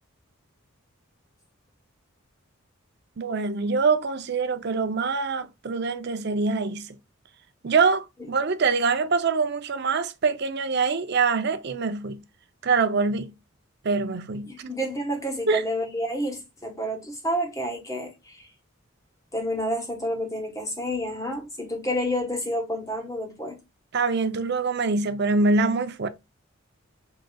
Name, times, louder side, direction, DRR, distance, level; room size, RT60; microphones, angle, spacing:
voice 1, 3.2-6.9 7.6-12.2 12.6-13.3 13.8-14.7 15.5-15.6 23.9-26.1, right 4 dB, 50° right, 0.5 m, -24 dB
voice 2, 14.4-18.4 19.3-23.6, equal, 15° left, 1.1 m, -29 dB
4.8 x 3.8 x 2.2 m
head